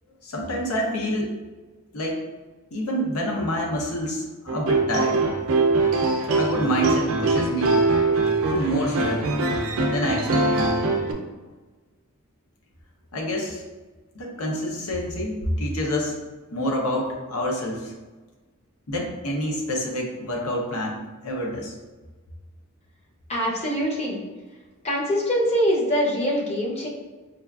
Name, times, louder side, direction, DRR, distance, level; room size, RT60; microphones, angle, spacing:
voice 1, 0.2-1.3 1.9-2.2 2.7-5.2 6.4-7.8 8.5-9.3 9.9-10.6 13.1-13.6 14.1-16.2 16.5-17.9 18.9-21.7, equal, 80° left, -1 dB, 0.7 m, -27 dB
sound 1, 4.5-11.1, right 3 dB, 65° right, 0.4 m, -22 dB
voice 2, 23.3-24.2 24.8-26.9, equal, 30° left, -3 dB, 0.6 m, -23 dB
4.8 x 2.4 x 2.3 m, 1.3 s
head